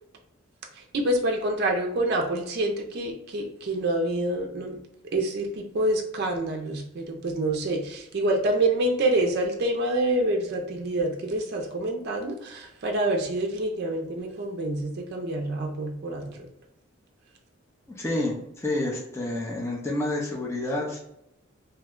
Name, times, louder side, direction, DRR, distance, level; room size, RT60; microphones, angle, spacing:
voice 1, 0.8-4.8 5.1-16.4, right 1 dB, 50° right, 1 dB, 0.4 m, -27 dB
voice 2, 18.0-21.0, left 1 dB, 15° left, -3 dB, 0.4 m, -29 dB
2.7 x 2.1 x 3.6 m, 0.77 s
head